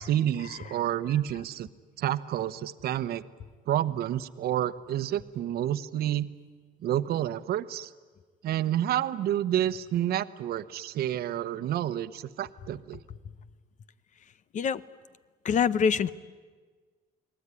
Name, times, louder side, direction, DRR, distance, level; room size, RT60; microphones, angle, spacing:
voice 1, 0.0-1.7 2.0-3.2 3.7-6.3 6.8-7.9 8.4-13.0, right 11 dB, 65° right, 13 dB, 1.0 m, -29 dB
voice 2, 15.4-16.1, left 7 dB, 45° left, 16 dB, 0.9 m, -24 dB
30.0 x 20.0 x 9.8 m, 1.4 s
cardioid pair, 110°, 17 cm